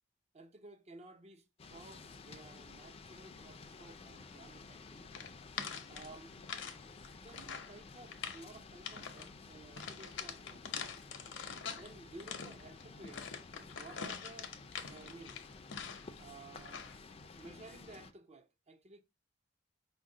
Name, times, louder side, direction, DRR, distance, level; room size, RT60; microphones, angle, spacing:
voice 1, 0.3-5.1 5.9-6.3 7.2-10.7 11.8-13.3 13.7-15.4 16.2-16.9 17.4-19.0, right 2 dB, 35° right, 0.5 m, -55 dB
sound 1, 1.6-18.1, left 4 dB, 30° left, 0.4 m, -53 dB
sound 2, 5.1-6.8 7.0-7.7 8.1-8.4 8.8-9.3 9.8-11.9 12.2-16.2 16.6-17.0, left 6 dB, 70° left, 0.6 m, -44 dB
5.1 x 2.2 x 3.6 m
head